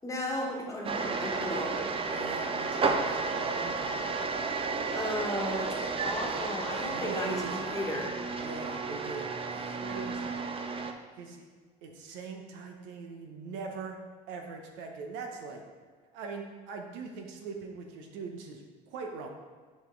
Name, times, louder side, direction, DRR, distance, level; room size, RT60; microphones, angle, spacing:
voice 1, 0.0-1.9 4.9-8.2, left 1 dB, 15° left, -1 dB, 1.4 m, -35 dB
sound 1, 0.8-10.9, right 4 dB, 30° right, 0.6 m, -32 dB
voice 2, 2.1-4.2 6.7-7.8 8.4-10.4 11.1-11.5 11.8-14.0 14.3-15.6 16.1-19.3, right 4 dB, 75° right, 3 dB, 1.0 m, -41 dB
5.3 x 5.3 x 3.8 m, 1.5 s
supercardioid pair, 80°, 19 cm